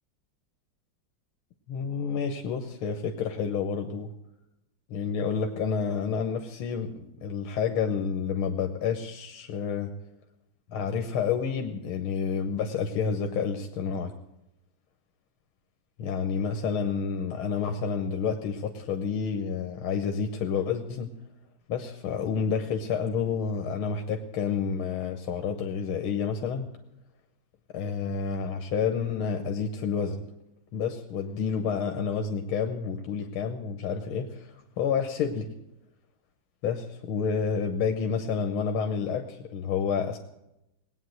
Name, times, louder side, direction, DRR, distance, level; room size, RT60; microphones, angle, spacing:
voice 1, 1.7-4.1 4.9-9.9 10.7-14.1 16.0-21.1 21.7-26.7 27.7-30.2 30.7-35.5 36.6-40.2, left 6 dB, 85° left, 5 dB, 1.9 m, -29 dB
19.0 x 9.1 x 7.9 m, 0.88 s
omnidirectional pair, 2.2 m